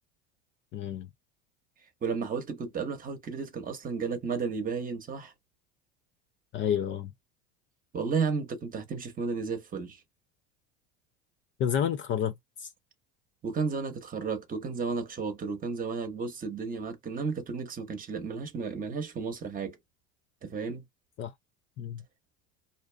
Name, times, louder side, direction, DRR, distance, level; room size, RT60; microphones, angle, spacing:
voice 1, 0.7-1.1 6.5-7.1 11.6-12.7 21.2-21.3 21.8-22.0, left 9 dB, 40° left, 0.4 m, -30 dB
voice 2, 2.0-5.3 7.9-10.0 13.4-19.8 20.4-20.8, right 5 dB, 30° right, 0.9 m, -33 dB
2.5 x 2.3 x 2.2 m
supercardioid pair, 95°, 30 cm